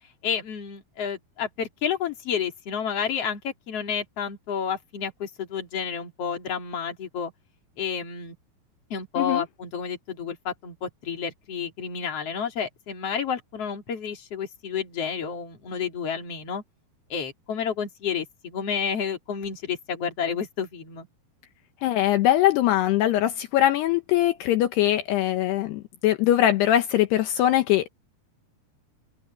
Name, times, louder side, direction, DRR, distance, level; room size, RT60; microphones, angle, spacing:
voice 1, 0.2-7.3 7.8-8.4 8.9-16.6 17.1-21.1, left 7 dB, 40° left, 3.6 m, -30 dB
voice 2, 21.8-27.9, left 13 dB, 75° left, 3.1 m, -22 dB
omnidirectional pair, 4.9 m